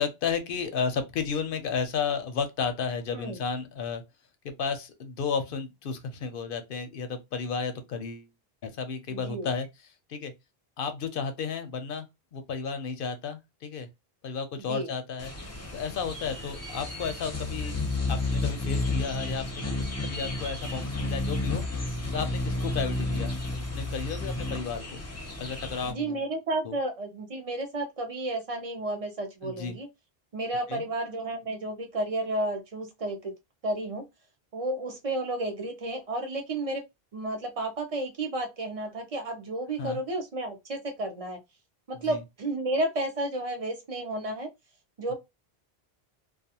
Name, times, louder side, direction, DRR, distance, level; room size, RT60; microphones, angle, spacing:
voice 1, 0.0-4.0 4.4-8.3 8.6-9.7 10.1-10.3 10.8-13.9 14.2-15.3 15.7-17.8 18.1-19.6 20.0-21.9 22.1-23.4 23.7-25.0 25.4-26.2 26.6-26.8 29.4-29.8 30.7-30.8 39.8-40.0 41.9-42.2, left 6 dB, 65° left, 0.7 m, -33 dB
voice 2, 9.1-9.5 14.7-14.9 25.8-29.9 30.3-33.3 33.6-34.0 34.5-36.8 37.1-41.4 41.9-44.5 45.0-45.1, right 2 dB, 40° right, 0.7 m, -32 dB
sound 1, 15.2-25.9, left 2 dB, 20° left, 0.6 m, -32 dB
2.3 x 2.3 x 2.7 m
omnidirectional pair, 1.0 m